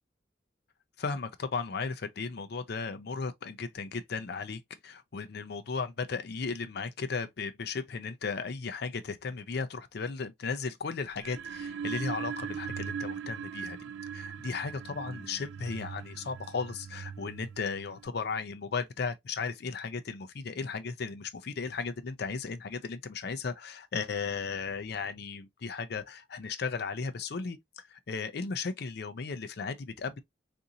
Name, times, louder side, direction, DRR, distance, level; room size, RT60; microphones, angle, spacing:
voice 1, 1.0-13.8 14.1-30.2, left 5 dB, 60° left, 0.5 m, -35 dB
sound 1, 11.1-18.1, right 7 dB, 80° right, 0.3 m, -40 dB
3.8 x 2.6 x 2.8 m
head